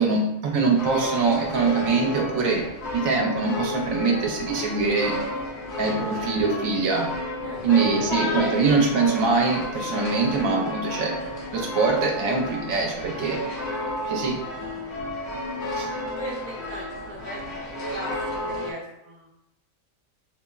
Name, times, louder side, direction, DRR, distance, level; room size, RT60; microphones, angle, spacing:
voice 1, 0.0-2.7 2.9-5.2 5.8-7.1 7.6-11.2 11.5-13.4 14.0-14.4 15.7-15.9, right 4 dB, 80° right, 0 dB, 1.0 m, -23 dB
sound 1, 0.8-18.7, left 2 dB, 55° left, 1.0 m, -32 dB
voice 2, 16.2-19.3, right 1 dB, 35° right, -5 dB, 1.0 m, -38 dB
5.4 x 2.0 x 2.3 m, 0.89 s
omnidirectional pair, 1.4 m